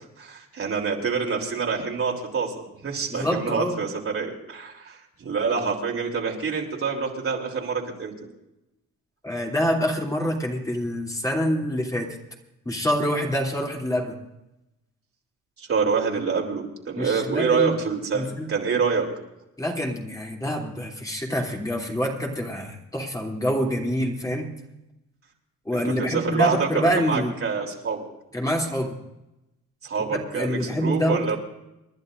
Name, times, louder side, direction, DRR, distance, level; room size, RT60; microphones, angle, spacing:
voice 1, 0.0-8.1 15.6-19.1 25.8-28.0 29.8-31.4, right 5 dB, 45° right, -1 dB, 3.4 m, -26 dB
voice 2, 3.1-3.8 9.2-12.1 12.6-14.2 17.0-17.8 18.1-18.5 19.6-24.5 25.6-27.3 28.3-28.9 30.1-31.4, equal, 10° left, -1 dB, 2.9 m, -26 dB
29.5 x 11.0 x 2.6 m, 0.92 s
cardioid pair, 90°, 30 cm